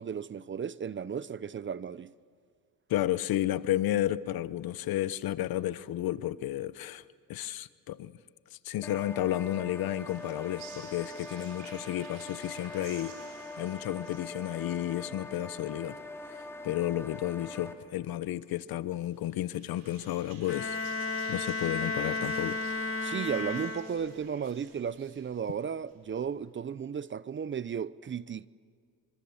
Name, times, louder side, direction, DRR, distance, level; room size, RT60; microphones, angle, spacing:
voice 1, 0.0-2.1 23.0-28.5, right 7 dB, 30° right, 0.6 m, -34 dB
voice 2, 2.9-7.0 7.3-8.1 8.5-13.1 13.5-16.0 16.6-20.8 21.3-22.6, left 13 dB, 70° left, 0.9 m, -32 dB
sound 1, 8.8-17.7, left 2 dB, 5° left, 3.0 m, -43 dB
sound 2, 9.5-15.5 19.0-25.9, right 6 dB, 85° right, 5.6 m, -53 dB
Bowed string instrument, 20.5-24.2, left 3 dB, 35° left, 2.3 m, -33 dB
26.0 x 25.5 x 7.2 m
cardioid pair, 100°, 38 cm